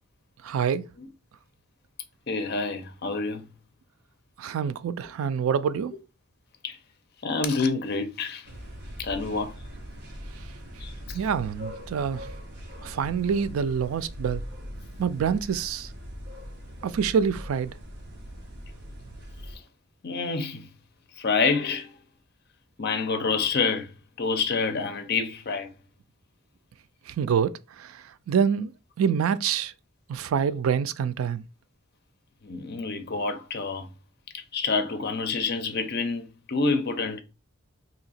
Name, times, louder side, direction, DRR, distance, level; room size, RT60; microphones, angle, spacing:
voice 1, 0.4-0.8 4.4-5.9 11.1-12.3 12.8-14.4 15.0-15.9 16.8-17.7 27.1-28.7 29.0-29.7 30.1-31.4, right 7 dB, 80° right, 0.3 m, -26 dB
voice 2, 2.3-3.5 6.6-6.8 7.2-8.5 9.0-9.5 10.8-11.2 19.5-19.6 20.0-20.7 21.2-21.9 22.8-23.9 24.2-25.7 32.4-33.9 34.3-37.2, left 4 dB, 50° left, 0.6 m, -28 dB
sound 1, 8.4-19.6, equal, 55° right, 0.9 m, -41 dB
2.8 x 2.8 x 4.1 m
head